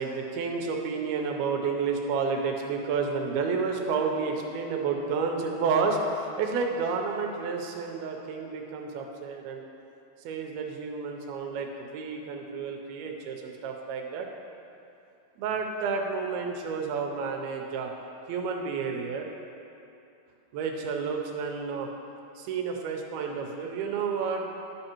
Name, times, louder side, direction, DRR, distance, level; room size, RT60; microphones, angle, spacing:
voice 1, 0.0-9.6 10.3-14.3 15.4-17.9 18.3-19.3 20.5-21.9 22.4-24.5, right 5 dB, 80° right, 2 dB, 2.5 m, -30 dB
11.0 x 6.5 x 3.0 m, 2.8 s
omnidirectional pair, 4.5 m